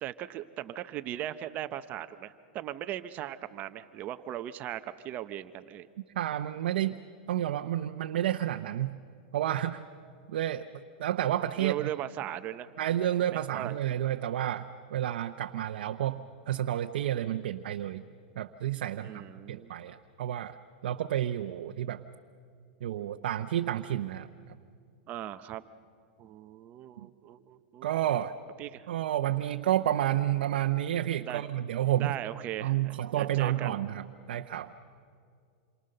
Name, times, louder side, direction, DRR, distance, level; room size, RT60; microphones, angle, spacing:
voice 1, 0.0-5.9 11.6-12.7 13.3-13.8 19.0-19.8 25.1-25.6 26.2-27.9 28.6-28.9 31.2-31.4 32.0-33.8, right 12 dB, 30° right, 12 dB, 0.8 m, -38 dB
voice 2, 6.2-6.9 7.3-9.0 9.3-9.8 10.3-11.9 12.8-18.0 18.4-19.2 19.5-20.6 20.8-22.0 22.8-24.3 27.8-28.3 28.9-32.2 32.6-34.7, right 12 dB, 75° right, 5 dB, 0.8 m, -30 dB
28.0 x 23.5 x 6.7 m, 2.3 s
supercardioid pair, 150°, 5 cm